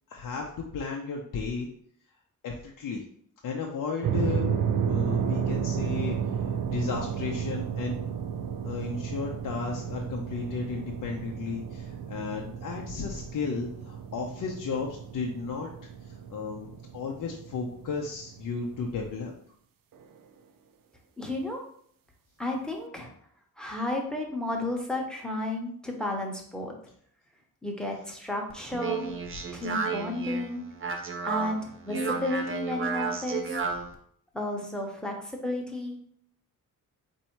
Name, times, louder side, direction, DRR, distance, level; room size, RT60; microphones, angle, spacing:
voice 1, 0.1-1.7 2.4-3.0 3.4-4.5 4.8-6.2 6.7-7.9 8.6-15.7 16.0-19.3, left 5 dB, 65° left, 0 dB, 0.6 m, -34 dB
sound 1, 4.0-19.2, right 7 dB, 70° right, 0.5 m, -32 dB
voice 2, 21.2-21.6 22.4-23.1 23.6-26.7 27.6-29.1 29.5-30.6 31.2-33.6 34.3-36.0, left 1 dB, ahead, 0 dB, 0.8 m, -32 dB
Speech, 28.5-33.9, right 5 dB, 35° right, 0.7 m, -32 dB
4.2 x 2.7 x 4.4 m, 0.62 s
wide cardioid pair, 130°, 35 cm